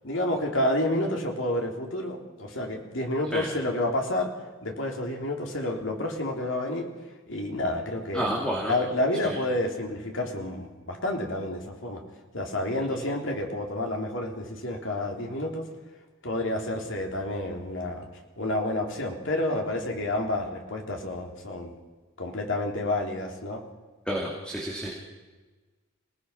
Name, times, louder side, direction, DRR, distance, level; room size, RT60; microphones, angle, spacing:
voice 1, 0.0-4.3 4.6-6.9 7.3-8.3 8.7-12.0 12.3-15.7 16.2-18.1 18.4-21.7 22.2-23.6, left 1 dB, 65° left, 2 dB, 3.4 m, -29 dB
voice 2, 8.1-8.7 9.2-9.4 12.9-13.0 24.1-24.9, right 1 dB, 5° left, -2 dB, 2.8 m, -30 dB
27.0 x 18.5 x 5.8 m, 1.3 s
head